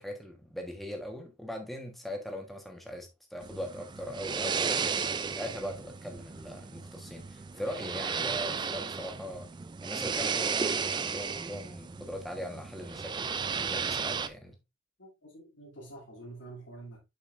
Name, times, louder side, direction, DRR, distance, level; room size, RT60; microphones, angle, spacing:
voice 1, 0.0-4.9 5.3-9.5 9.8-14.6, equal, ahead, 1.3 m, -40 dB
sound 1, 3.4-14.3, right 5 dB, 25° right, 0.3 m, -34 dB
voice 2, 15.0-17.0, right 2 dB, 65° left, 2.3 m, -47 dB
6.9 x 5.6 x 2.6 m
head